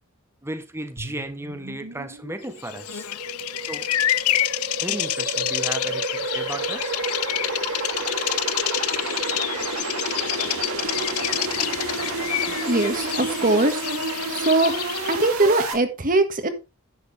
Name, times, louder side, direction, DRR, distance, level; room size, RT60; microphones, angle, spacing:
voice 1, 0.4-3.1 3.6-3.9 4.8-6.9, right 1 dB, 10° right, 1.1 m, -34 dB
sound 1, 1.0-15.7, right 3 dB, 80° right, 2.5 m, -30 dB
Bird vocalization bird call bird song, 2.7-15.3, left 14 dB, 85° left, 0.5 m, -28 dB
voice 2, 12.6-13.8 14.3-14.7 15.0-16.5, right 2 dB, 40° right, 1.7 m, -21 dB
10.5 x 7.9 x 3.4 m
head